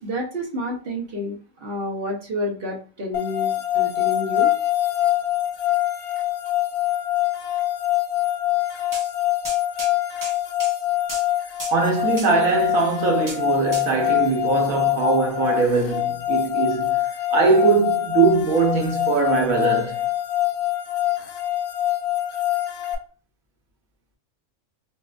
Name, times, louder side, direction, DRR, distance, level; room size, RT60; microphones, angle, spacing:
voice 1, 0.0-4.5, left 1 dB, 50° right, 0.9 m, -29 dB
sound 1, 3.1-22.9, left 14 dB, 65° left, 0.9 m, -24 dB
sound 2, 8.9-9.1 9.4-9.9 10.2-10.8 11.1-11.2 11.6-11.7 12.2-12.3 13.3-13.4 13.7-13.9, right 2 dB, 25° right, 0.5 m, -34 dB
voice 2, 11.7-20.1, right 4 dB, 85° right, 1.3 m, -21 dB
4.0 x 2.4 x 2.3 m
omnidirectional pair, 1.4 m